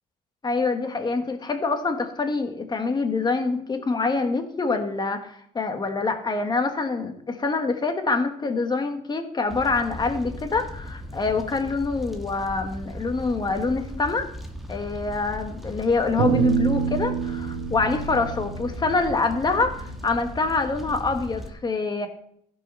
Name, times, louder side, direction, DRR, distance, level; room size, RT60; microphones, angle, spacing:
voice 1, 0.4-14.3 14.7-22.1, left 3 dB, 25° left, 6 dB, 1.6 m, -25 dB
Fire, 9.5-21.5, left 1 dB, ahead, 1.4 m, -38 dB
sound 1, 16.2-20.7, right 7 dB, 80° right, 1.1 m, -27 dB
15.5 x 5.5 x 5.6 m, 0.69 s
cardioid pair, 110°, 17 cm